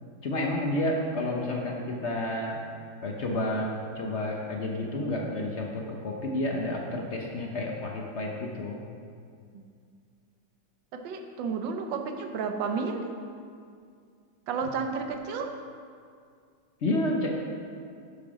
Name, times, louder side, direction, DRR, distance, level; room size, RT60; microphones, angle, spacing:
voice 1, 0.2-2.7 3.0-8.8 16.8-17.3, left 1 dB, 60° left, 0 dB, 0.7 m, -30 dB
voice 2, 10.9-13.1 14.5-15.5, right 5 dB, 75° right, 5 dB, 1.4 m, -32 dB
8.5 x 7.1 x 4.9 m, 2.2 s
omnidirectional pair, 2.2 m